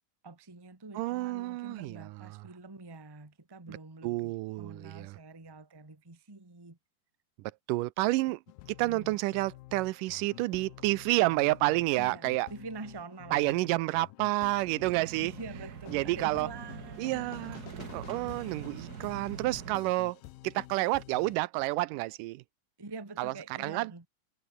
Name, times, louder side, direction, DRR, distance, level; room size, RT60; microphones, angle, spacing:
voice 1, 0.2-6.8 8.8-9.2 12.0-13.6 15.2-17.3 22.8-24.1, right 3 dB, 10° right, 1.0 m, -46 dB
voice 2, 1.0-2.3 3.7-3.8 4.0-5.2 7.7-8.4 8.8-12.5 13.3-15.3 15.9-16.5 17.0-17.6 17.9-20.2 20.4-22.4 23.2-23.3 23.6-23.9, right 20 dB, 80° right, 2.0 m, -29 dB
sound 1, 8.5-21.4, left 18 dB, 80° left, 2.4 m, -50 dB
sound 2, 14.8-19.8, right 7 dB, 60° right, 0.9 m, -44 dB
omnidirectional pair, 4.3 m